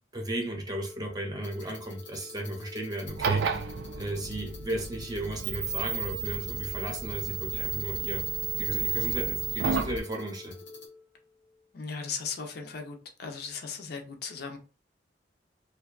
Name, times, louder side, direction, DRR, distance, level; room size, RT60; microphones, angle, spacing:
voice 1, 0.1-3.7 4.0-8.2 8.6-10.6, right 1 dB, 25° right, 0.6 m, -35 dB
Organ, 0.6-11.7, left 3 dB, 15° left, 0.5 m, -50 dB
sound 1, 1.4-10.9, left 4 dB, 90° left, 0.8 m, -51 dB
sound 2, 3.1-10.0, right 5 dB, 75° right, 0.4 m, -31 dB
voice 2, 11.7-14.6, left 5 dB, 60° left, 0.5 m, -37 dB
2.5 x 2.2 x 2.3 m
head